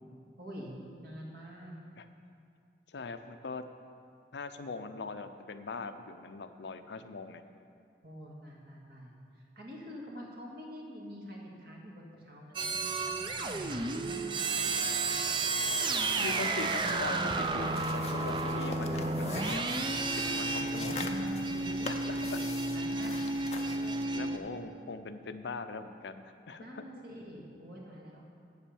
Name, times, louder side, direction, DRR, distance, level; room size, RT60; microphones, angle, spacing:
voice 1, 0.4-0.7 1.0-1.7 8.0-15.1 18.9-19.5 20.5-22.2 22.6-23.3 23.7-24.4 26.6-28.3, equal, 55° right, -2 dB, 1.9 m, -46 dB
voice 2, 2.9-3.7 4.3-7.4 16.2-19.6 20.3-21.1 21.9-22.4 24.1-26.8, left 4 dB, 80° left, 9 dB, 0.5 m, -41 dB
sound 1, 12.5-24.4, right 3 dB, 25° right, 0.4 m, -32 dB
sound 2, 16.9-24.1, left 4 dB, 35° left, 0.5 m, -45 dB
8.3 x 7.3 x 7.0 m, 2.4 s
head